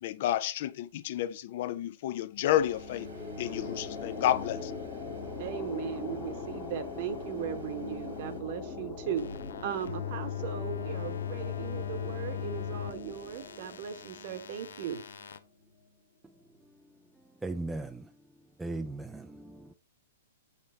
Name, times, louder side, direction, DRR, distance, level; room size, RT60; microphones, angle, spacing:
voice 1, 0.0-3.1 3.4-4.7, left 12 dB, 50° left, 0.5 m, -30 dB
sound 1, 2.4-15.8, left 4 dB, 30° left, 1.2 m, -41 dB
sound 2, 2.5-8.4, right 5 dB, 80° right, 2.0 m, -54 dB
voice 2, 5.4-9.3 9.6-15.0, right 8 dB, 50° right, 1.0 m, -37 dB
sound 3, 9.2-15.4, left 10 dB, 90° left, 0.7 m, -39 dB
voice 3, 17.4-18.1 18.6-19.7, right 2 dB, 5° right, 0.4 m, -37 dB
7.1 x 5.8 x 3.2 m
hypercardioid pair, 145°, 0 cm